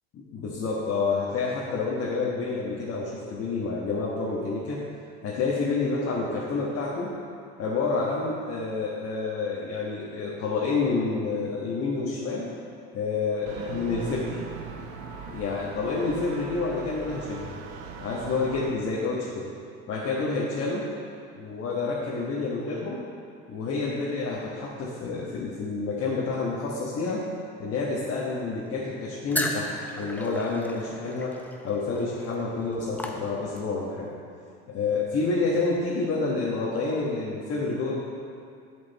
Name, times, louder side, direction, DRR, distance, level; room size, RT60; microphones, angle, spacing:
voice 1, 0.1-4.8 5.2-7.2 7.6-12.5 12.9-14.4 15.3-17.6 18.0-19.5 19.9-20.9 21.4-23.0 23.5-27.2 27.6-31.4 31.6-34.1 34.7-37.9, left 3 dB, 45° left, -6 dB, 1.4 m, -28 dB
sound 1, 13.4-18.7, right 5 dB, 85° right, 0.9 m, -39 dB
sound 2, 29.3-33.8, left 1 dB, 5° left, 0.7 m, -35 dB
10.5 x 5.2 x 4.1 m, 2.4 s
supercardioid pair, 95°, 31 cm